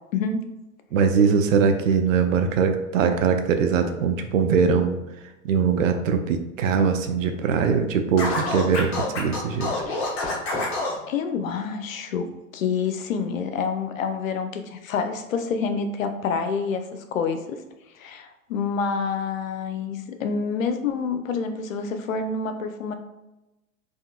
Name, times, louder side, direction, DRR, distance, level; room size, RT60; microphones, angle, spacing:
voice 1, 0.1-0.4 11.1-12.3 12.5-17.6 17.9-22.9, left 5 dB, 75° left, 7 dB, 0.6 m, -27 dB
voice 2, 0.9-5.0 5.4-9.7, right 6 dB, 70° right, 6 dB, 0.6 m, -21 dB
Scratching (performance technique), 8.2-11.0, left 2 dB, 35° left, 1.0 m, -27 dB
3.6 x 2.5 x 2.2 m, 0.99 s
hypercardioid pair, 110°, 40 cm